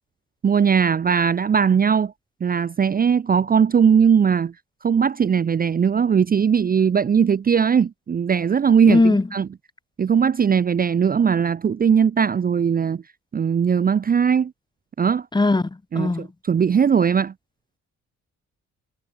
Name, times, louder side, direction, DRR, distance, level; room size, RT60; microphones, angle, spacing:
voice 1, 0.4-2.1 2.4-4.5 4.8-9.5 10.0-13.0 13.3-14.5 15.0-15.3 15.9-17.3, right 7 dB, 30° right, 0.6 m, -19 dB
voice 2, 8.9-9.2 15.3-15.7 15.9-16.3, left 3 dB, 15° left, 1.0 m, -18 dB
cardioid pair, 90°, 30 cm